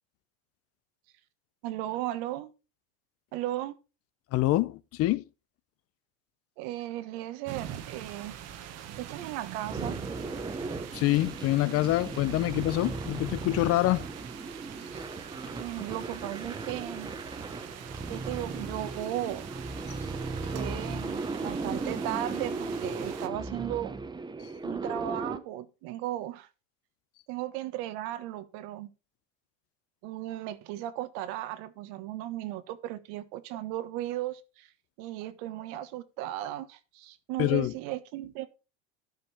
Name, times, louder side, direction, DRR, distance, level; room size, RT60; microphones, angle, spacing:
voice 1, 1.6-2.5 3.3-3.7 6.6-8.3 9.0-10.0 14.9-15.0 15.6-17.1 18.1-19.5 20.5-24.0 24.6-26.5 27.3-28.9 30.0-34.7 35.0-38.5, right 14 dB, 65° right, 1.3 m, -36 dB
voice 2, 4.3-5.2 10.9-14.1 19.9-20.0 37.4-37.7, left 16 dB, 45° left, 0.6 m, -26 dB
sound 1, 7.5-23.3, right 10 dB, 50° right, 1.3 m, -44 dB
sound 2, 9.7-25.4, right 3 dB, 15° right, 0.9 m, -37 dB
13.0 x 5.3 x 4.3 m
supercardioid pair, 110°, 34 cm